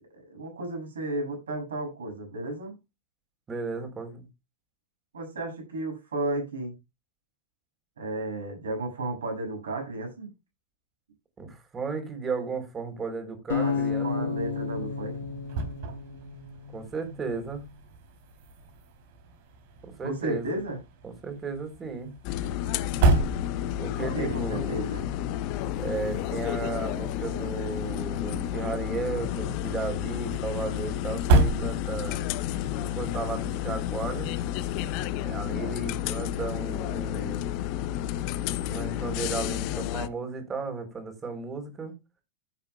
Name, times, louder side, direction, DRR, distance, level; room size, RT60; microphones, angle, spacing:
voice 1, 0.0-2.8 5.1-6.8 8.0-10.3 13.5-15.2 20.0-20.8 24.0-25.0, right 2 dB, 65° right, 6.9 m, -33 dB
voice 2, 3.5-4.3 11.4-14.3 16.7-17.6 19.8-20.4 21.0-22.1 23.8-24.8 25.8-32.2 32.8-34.3 35.2-37.5 38.7-41.9, right 4 dB, 20° right, 4.0 m, -34 dB
sound 1, 13.5-16.7, left 6 dB, 65° left, 4.2 m, -31 dB
sound 2, 14.3-32.3, right 2 dB, 50° right, 3.5 m, -32 dB
sound 3, 22.2-40.1, left 12 dB, 45° left, 0.8 m, -31 dB
15.5 x 8.5 x 2.4 m
figure-of-eight pair, 90°, 0 cm